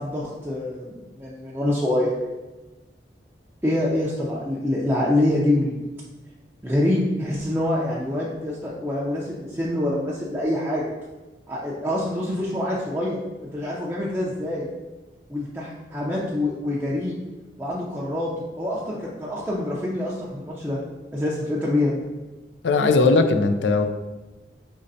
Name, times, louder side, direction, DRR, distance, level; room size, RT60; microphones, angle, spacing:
voice 1, 0.0-2.1 3.6-5.8 6.6-10.9 11.5-13.2 13.5-14.7 15.3-17.1 17.6-18.3 18.6-20.8 21.1-22.1, left 1 dB, 10° right, -7 dB, 0.5 m, -25 dB
voice 2, 22.6-23.9, left 3 dB, 80° left, 7 dB, 0.4 m, -19 dB
5.3 x 3.2 x 2.6 m, 1.2 s
head